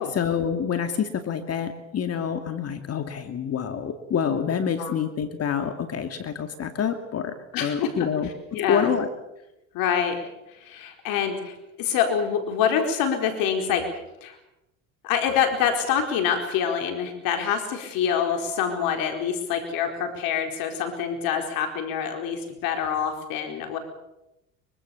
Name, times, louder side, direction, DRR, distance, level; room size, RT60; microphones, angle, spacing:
voice 1, 0.0-9.1, left 7 dB, 40° left, 8 dB, 2.5 m, -27 dB
voice 2, 7.5-7.9 8.5-8.9 9.7-13.9 14.2-14.4 15.0-23.8, left 7 dB, 65° left, 5 dB, 4.5 m, -26 dB
24.5 x 24.0 x 7.1 m, 0.90 s
supercardioid pair, 95°, 37 cm